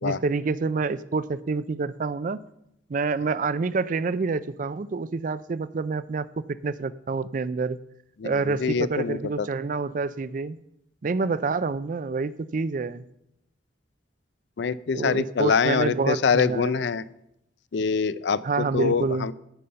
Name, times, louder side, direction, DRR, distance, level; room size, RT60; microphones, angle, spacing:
voice 1, 0.0-2.4 2.9-7.8 8.2-10.6 11.0-13.0 14.9-16.9 18.4-19.3, right 4 dB, 45° right, 16 dB, 0.4 m, -27 dB
voice 2, 8.2-9.5 14.6-17.0 17.7-19.3, left 5 dB, 65° left, 16 dB, 0.4 m, -25 dB
15.0 x 5.5 x 5.6 m, 0.81 s
head